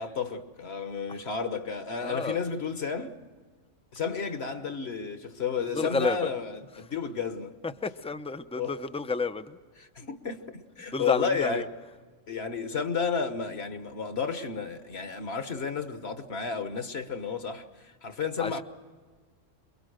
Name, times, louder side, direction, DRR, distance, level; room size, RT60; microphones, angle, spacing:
voice 1, 0.0-3.2 3.9-7.6 8.6-8.8 9.8-11.7 12.3-18.6, left 5 dB, 60° left, 1.5 m, -32 dB
voice 2, 2.0-2.4 5.8-6.3 7.6-9.6 10.9-11.6 18.4-18.6, left 4 dB, 10° left, 0.3 m, -30 dB
27.0 x 22.5 x 6.5 m
omnidirectional pair, 1.3 m